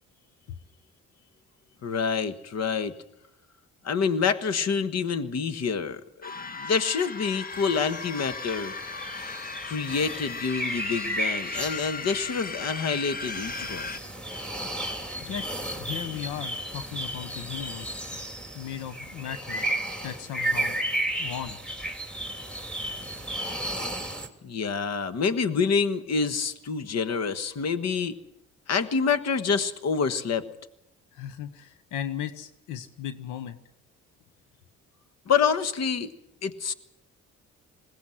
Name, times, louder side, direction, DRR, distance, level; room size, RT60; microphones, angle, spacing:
voice 1, 1.8-2.9 3.8-8.7 9.6-13.9 24.4-28.1 28.7-30.5 35.3-36.1 36.4-36.7, left 5 dB, 60° left, 12 dB, 1.5 m, -27 dB
sound 1, 6.2-14.0, left 4 dB, 30° left, 1.0 m, -37 dB
sound 2, 7.5-24.3, right 1 dB, 5° left, 2.7 m, -34 dB
voice 2, 13.6-13.9 14.3-14.5 15.2-15.5 15.8-18.0 18.5-19.7 20.0-20.8 21.2-21.6 31.1-33.6, left 10 dB, 90° left, 12 dB, 1.1 m, -36 dB
20.5 x 17.5 x 7.8 m, 0.81 s
cardioid pair, 90°, 30 cm